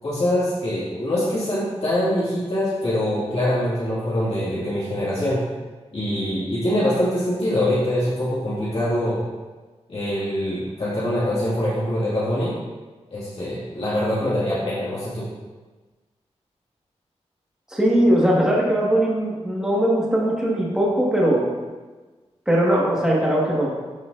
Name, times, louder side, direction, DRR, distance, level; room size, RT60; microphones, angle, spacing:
voice 1, 0.0-5.4 5.9-9.2 9.9-12.5 13.1-15.3, left 1 dB, 60° left, -10 dB, 2.3 m, -24 dB
voice 2, 17.7-21.4 22.5-23.7, right 1 dB, 5° right, -5 dB, 1.9 m, -20 dB
12.5 x 4.8 x 2.7 m, 1.3 s
wide cardioid pair, 110°, 11 cm